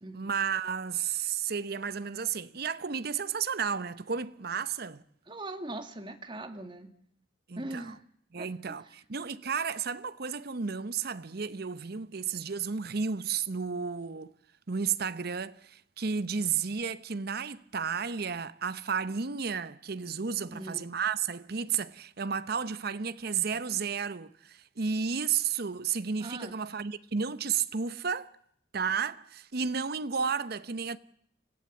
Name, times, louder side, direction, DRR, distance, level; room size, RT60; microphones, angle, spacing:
voice 1, 0.1-5.0 7.5-7.9 8.3-14.3 14.7-28.3 28.7-31.0, right 6 dB, 60° right, 0.8 m, -32 dB
voice 2, 5.3-6.9 7.6-8.0 8.4-9.0 20.5-20.9 26.2-26.6, right 2 dB, 25° right, 1.8 m, -41 dB
25.5 x 16.0 x 8.4 m
head